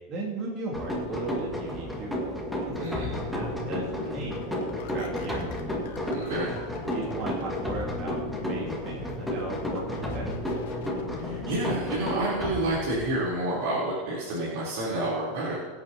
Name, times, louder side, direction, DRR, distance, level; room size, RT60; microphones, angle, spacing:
voice 1, 0.1-2.2 2.7-4.5 4.9-5.4 6.9-8.2 8.4-10.3, right 2 dB, 40° right, -4 dB, 2.7 m, -37 dB
sound 1, 0.7-13.2, equal, ahead, 2.1 m, -32 dB
voice 2, 2.8-3.1 6.1-6.5 11.2-15.6, right 1 dB, 70° right, -7 dB, 3.8 m, -29 dB
sound 2, 3.0-11.7, left 4 dB, 75° left, 1.6 m, -41 dB
23.5 x 8.7 x 3.0 m, 1.4 s
supercardioid pair, 145°, 0 cm